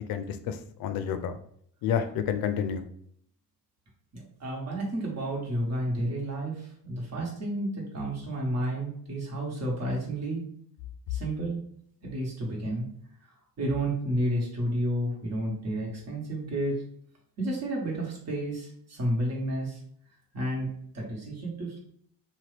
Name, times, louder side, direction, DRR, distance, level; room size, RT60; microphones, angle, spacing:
voice 1, 0.1-1.4 1.8-2.8, left 8 dB, 65° left, 9 dB, 0.5 m, -29 dB
voice 2, 4.1-6.5 6.8-10.4 11.1-11.6 12.0-12.8 13.6-16.8 17.4-19.8 20.3-20.7 20.9-21.8, right 1 dB, 40° right, -2 dB, 1.3 m, -31 dB
2.8 x 2.3 x 3.3 m, 0.65 s
cardioid pair, 95°, 38 cm